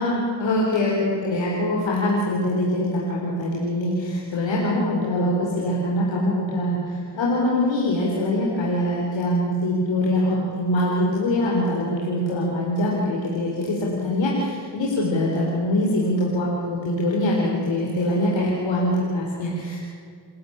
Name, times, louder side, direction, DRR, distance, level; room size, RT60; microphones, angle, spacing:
voice 1, 0.0-19.8, left 1 dB, 85° left, -3 dB, 4.4 m, -23 dB
28.5 x 13.5 x 8.9 m, 2.2 s
cardioid pair, 60°, 44 cm